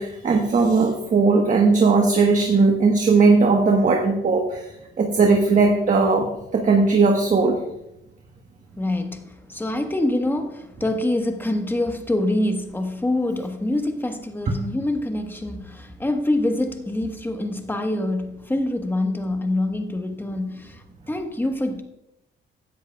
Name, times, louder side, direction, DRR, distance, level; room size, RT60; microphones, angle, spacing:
voice 1, 0.0-4.7 5.0-7.6, right 4 dB, 40° right, 1.3 m, -18 dB
voice 2, 8.8-21.8, left 1 dB, 10° left, 1.3 m, -25 dB
16.0 x 10.5 x 2.3 m
cardioid pair, 90°, 20 cm